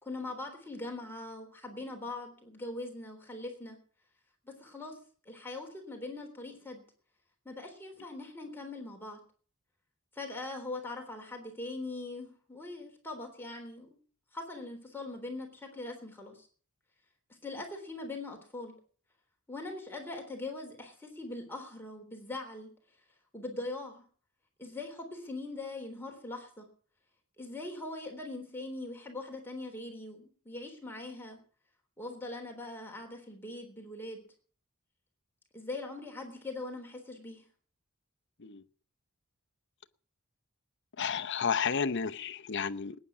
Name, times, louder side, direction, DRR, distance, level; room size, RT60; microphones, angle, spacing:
voice 1, 0.0-3.8 4.5-5.0 5.3-6.8 7.5-9.2 10.1-14.0 14.3-16.5 17.4-18.7 19.5-22.7 23.3-24.0 24.6-26.7 27.4-31.4 32.0-34.2 35.5-37.4, left 2 dB, 10° left, 3.6 m, -41 dB
voice 2, 41.0-43.0, left 6 dB, 60° left, 0.9 m, -32 dB
20.5 x 10.0 x 6.2 m
head